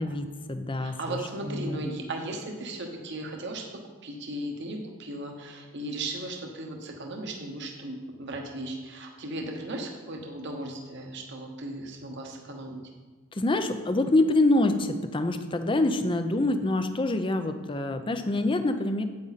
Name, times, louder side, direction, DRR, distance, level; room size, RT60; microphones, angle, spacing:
voice 1, 0.0-1.2 1.4-2.0 13.3-19.0, left 2 dB, 25° left, 9 dB, 0.5 m, -26 dB
voice 2, 0.8-3.7 4.0-12.8, right 1 dB, 55° right, 2 dB, 1.1 m, -36 dB
8.7 x 8.6 x 4.1 m, 1.4 s
head